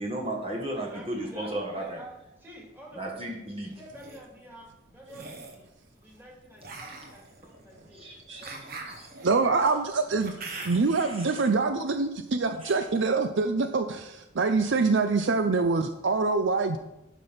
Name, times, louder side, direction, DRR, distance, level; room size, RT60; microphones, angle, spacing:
voice 1, 0.0-2.0 3.0-3.7 8.0-8.5 9.0-9.1 10.5-11.4 12.6-12.7, right 1 dB, 25° right, 0 dB, 1.4 m, -35 dB
voice 2, 0.8-3.1 3.6-5.7 6.0-8.0 8.4-8.8 16.5-16.8, equal, 10° right, -3 dB, 2.5 m, -48 dB
sound 1, 3.7-4.2 5.1-5.6 6.6-11.0, right 3 dB, 45° right, 1.4 m, -43 dB
voice 3, 9.2-10.4 10.6-16.8, right 4 dB, 60° right, 8 dB, 0.5 m, -25 dB
12.0 x 5.2 x 5.7 m, 0.92 s
head